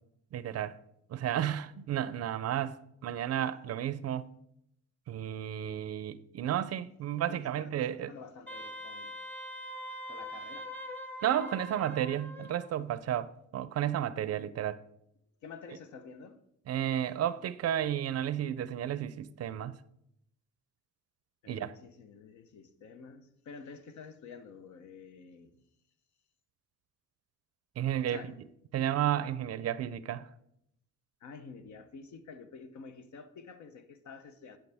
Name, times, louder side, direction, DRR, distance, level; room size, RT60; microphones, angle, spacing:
voice 1, 0.3-0.8 1.1-2.8 3.0-4.3 5.1-8.1 11.2-14.8 16.7-19.7 21.5-21.8 27.8-28.2 28.7-30.3, right 11 dB, 55° right, 0.5 m, -32 dB
voice 2, 7.3-9.1 9.9-10.7 15.4-16.4 21.4-25.6 28.1-28.4 31.2-34.6, left 5 dB, 70° left, 0.8 m, -49 dB
Wind instrument woodwind instrument, 8.5-12.7, left 1 dB, 5° left, 0.9 m, -43 dB
9.4 x 5.7 x 3.4 m
cardioid pair, 90°, 30 cm